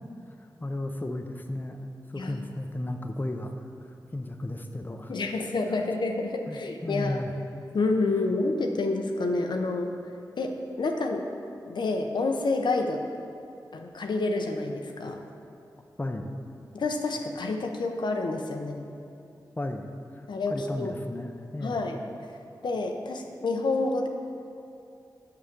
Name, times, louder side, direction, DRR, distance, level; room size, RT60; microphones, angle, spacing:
voice 1, 0.4-5.1 6.5-7.3 16.0-16.3 19.6-19.9 20.1-21.8, left 1 dB, 25° left, 5 dB, 0.6 m, -34 dB
voice 2, 5.1-7.2 7.7-9.9 10.4-11.2 11.7-13.1 13.7-15.2 16.7-18.9 20.3-20.9 21.6-22.0 22.6-24.1, left 3 dB, 75° left, 3 dB, 0.6 m, -28 dB
5.7 x 4.9 x 6.6 m, 2.7 s
cardioid pair, 50°, 8 cm